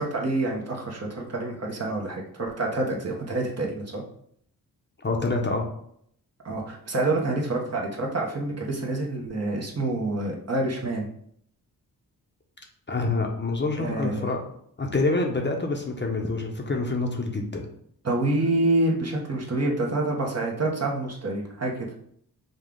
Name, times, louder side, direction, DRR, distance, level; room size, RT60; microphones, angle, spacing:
voice 1, 0.0-4.0 6.4-11.1 13.8-14.3 18.0-21.9, right 2 dB, 40° right, -1 dB, 1.1 m, -27 dB
voice 2, 5.0-5.7 12.9-14.4 14.8-17.7, left 3 dB, 30° left, 2 dB, 0.8 m, -26 dB
5.2 x 2.4 x 3.8 m, 0.67 s
cardioid pair, 70°, 39 cm